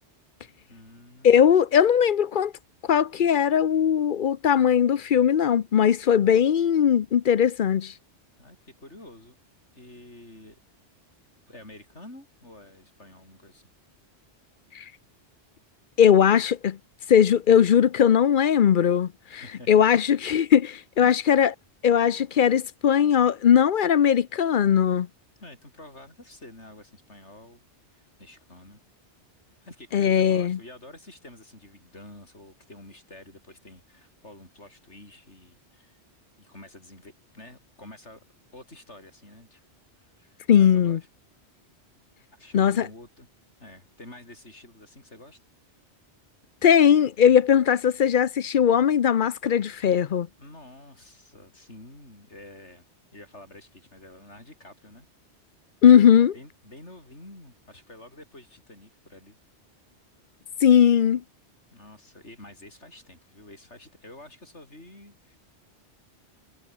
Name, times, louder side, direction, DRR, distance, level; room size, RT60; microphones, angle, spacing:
voice 1, 0.7-1.5 8.4-9.4 9.7-10.6 11.5-13.7 19.3-19.8 21.0-21.2 25.4-27.6 27.9-28.8 29.6-36.0 36.4-38.2 38.5-39.6 40.0-41.0 42.3-43.3 43.6-45.4 50.4-52.8 53.1-55.1 56.3-59.4 61.7-65.4, left 1 dB, 80° left, 7.8 m, -48 dB
voice 2, 1.2-2.5 2.9-7.9 14.7-14.8 16.0-16.8 17.1-19.4 19.7-21.5 21.8-25.1 29.9-30.6 40.5-41.0 42.5-42.9 46.6-50.3 55.8-56.3 60.6-61.2, left 8 dB, 55° left, 0.7 m, -19 dB
omnidirectional pair, 1.2 m